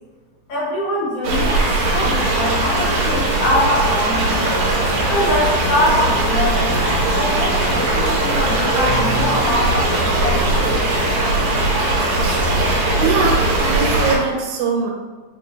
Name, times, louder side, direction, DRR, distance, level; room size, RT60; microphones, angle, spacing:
voice 1, 0.5-4.5 5.1-6.7 7.1-10.8, left 1 dB, 70° left, -7 dB, 1.5 m, -23 dB
sound 1, 1.2-14.2, right 2 dB, 70° right, 2.0 m, -19 dB
sound 2, 3.1-9.4, right 1 dB, 35° left, 0.8 m, -37 dB
voice 2, 13.0-14.9, right 4 dB, 85° right, 1 dB, 2.1 m, -22 dB
4.7 x 2.2 x 3.2 m, 1.3 s
omnidirectional pair, 3.4 m